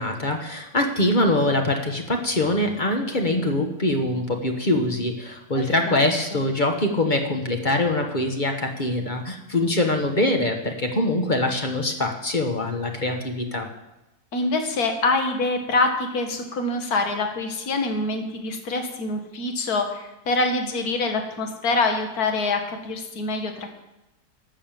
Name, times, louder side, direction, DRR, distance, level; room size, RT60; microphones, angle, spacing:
voice 1, 0.0-13.7, left 1 dB, 30° left, 3 dB, 1.2 m, -23 dB
voice 2, 5.5-6.1 6.3-6.4 14.3-23.8, left 3 dB, 60° left, 4 dB, 1.9 m, -25 dB
12.0 x 7.2 x 7.5 m, 0.95 s
omnidirectional pair, 1.8 m